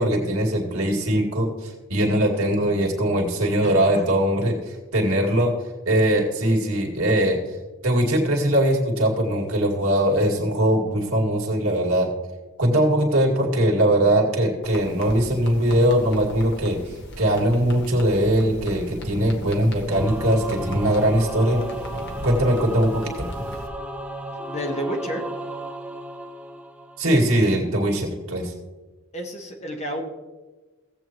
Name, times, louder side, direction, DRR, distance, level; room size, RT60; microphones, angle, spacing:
voice 1, 0.0-5.5 5.8-7.4 7.8-12.1 12.6-21.6 22.2-23.3 27.0-28.5, right 1 dB, 80° right, -1 dB, 2.2 m, -21 dB
voice 2, 3.6-4.0 24.5-25.2 29.1-30.0, equal, 30° left, 2 dB, 1.2 m, -30 dB
sound 1, 14.6-23.7, equal, 50° left, 1.5 m, -36 dB
Singing / Musical instrument, 19.9-27.4, right 1 dB, 5° right, 0.6 m, -34 dB
16.5 x 8.0 x 3.0 m, 1.2 s
head